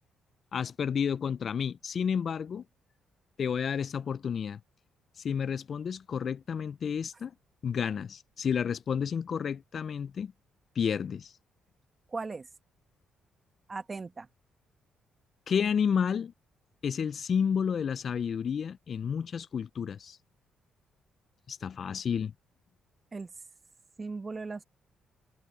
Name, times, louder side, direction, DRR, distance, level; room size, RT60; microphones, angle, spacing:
voice 1, 0.5-2.6 3.4-4.6 5.2-7.3 7.6-10.3 10.8-11.3 15.5-16.3 16.8-20.2 21.5-22.3, left 7 dB, 50° left, 0.3 m, -31 dB
voice 2, 12.1-12.5 13.7-14.3 23.1-23.3 24.0-24.6, right 4 dB, 30° right, 1.0 m, -37 dB
cardioid pair, 90°, 0 cm